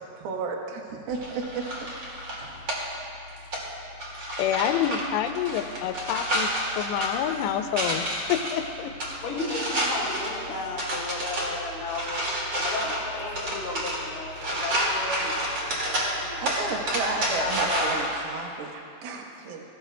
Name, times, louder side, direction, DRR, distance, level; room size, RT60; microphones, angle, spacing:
voice 1, 0.0-1.9 16.4-19.6, right 4 dB, 70° right, 1 dB, 2.8 m, -33 dB
sound 1, 1.1-18.1, equal, 35° right, 2.0 m, -30 dB
voice 2, 4.4-9.0, left 10 dB, 90° left, 8 dB, 2.8 m, -28 dB
voice 3, 9.2-12.2 12.5-16.5 17.1-17.9, left 2 dB, 55° left, -5 dB, 3.2 m, -34 dB
22.0 x 15.0 x 2.3 m, 2.5 s
omnidirectional pair, 4.9 m